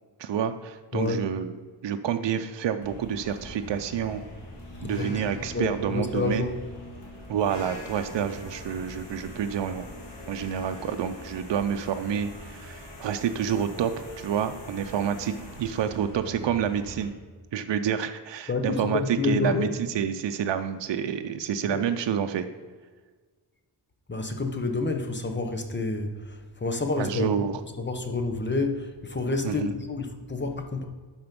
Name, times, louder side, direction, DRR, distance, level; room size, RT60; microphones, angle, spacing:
voice 1, 0.2-1.5 1.8-4.2 4.8-6.5 7.3-9.9 10.3-17.1 17.5-19.7 19.9-22.4 27.0-27.5 29.4-29.7, right 8 dB, 75° right, 8 dB, 0.6 m, -28 dB
voice 2, 0.9-1.3 4.8-5.2 5.5-6.5 18.5-19.8 21.7-21.8 24.1-27.5 27.8-30.8, left 3 dB, 25° left, 5 dB, 1.0 m, -29 dB
sound 1, 2.8-17.0, left 1 dB, 70° left, 2.6 m, -42 dB
11.5 x 4.4 x 5.2 m, 1.5 s
wide cardioid pair, 110°, 43 cm